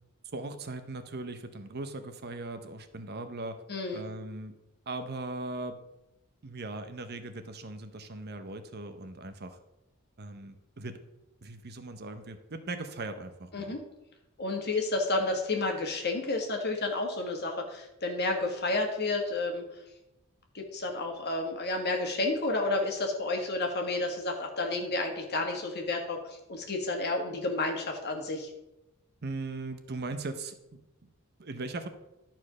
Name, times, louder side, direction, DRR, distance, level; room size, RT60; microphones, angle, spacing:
voice 1, 0.3-3.6 3.9-4.6 4.9-5.8 6.4-9.6 10.2-11.0 11.4-13.8 29.2-31.1 31.4-31.9, right 2 dB, 50° right, 9 dB, 0.8 m, -39 dB
voice 2, 3.7-4.0 13.5-13.8 14.4-19.7 20.5-28.5, left 2 dB, 50° left, 3 dB, 1.7 m, -31 dB
11.5 x 4.5 x 6.1 m, 0.92 s
head